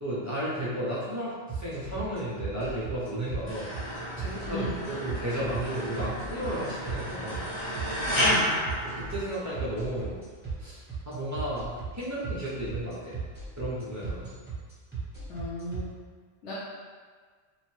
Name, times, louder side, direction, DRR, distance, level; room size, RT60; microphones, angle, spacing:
voice 1, 0.0-3.7 4.2-7.5 8.8-10.2 10.6-13.2 13.6-14.3, right 1 dB, 25° right, -10 dB, 0.4 m, -33 dB
sound 1, 1.5-15.8, right 5 dB, 10° right, 0.8 m, -36 dB
sound 2, 3.5-9.8, equal, 35° left, 0.6 m, -32 dB
voice 2, 8.2-8.5 15.3-15.9 16.4-16.5, left 1 dB, 90° left, -8 dB, 1.0 m, -35 dB
3.0 x 2.0 x 3.1 m, 1.5 s
omnidirectional pair, 1.2 m